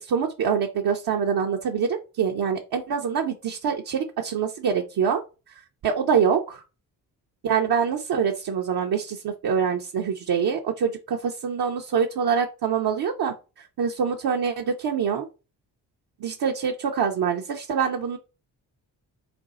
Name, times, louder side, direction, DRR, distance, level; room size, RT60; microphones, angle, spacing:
voice 1, 0.0-5.2 5.8-6.6 7.4-13.3 13.8-15.3 16.2-18.2, right 7 dB, 50° right, 1 dB, 0.8 m, -25 dB
4.4 x 2.3 x 4.0 m, 0.31 s
hypercardioid pair, 40°, 46 cm